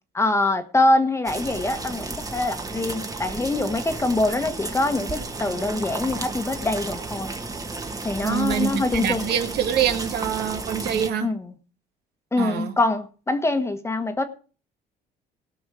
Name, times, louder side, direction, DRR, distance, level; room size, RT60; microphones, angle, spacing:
voice 1, 0.1-7.3 8.0-9.3 11.2-11.5 12.3-14.2, left 2 dB, 15° left, 8 dB, 1.3 m, -24 dB
sound 1, 1.2-11.1, right 3 dB, 20° right, 1.5 m, -33 dB
voice 2, 8.2-11.3 12.4-12.7, right 9 dB, 70° right, 7 dB, 1.8 m, -25 dB
17.5 x 6.2 x 4.9 m, 0.37 s
cardioid pair, 110°, 17 cm